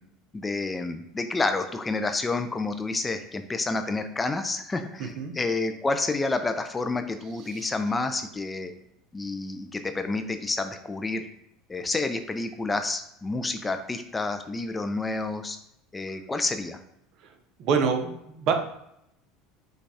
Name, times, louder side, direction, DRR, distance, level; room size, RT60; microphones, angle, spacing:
voice 1, 0.3-8.7 9.1-11.2 11.7-15.6 15.9-16.8, left 3 dB, 15° left, 8 dB, 0.4 m, -29 dB
voice 2, 5.0-5.3 7.5-7.7 17.2-17.3 17.6-18.5, right 6 dB, 55° right, 5 dB, 0.7 m, -27 dB
5.2 x 2.3 x 4.1 m, 0.78 s
supercardioid pair, 115°, 0 cm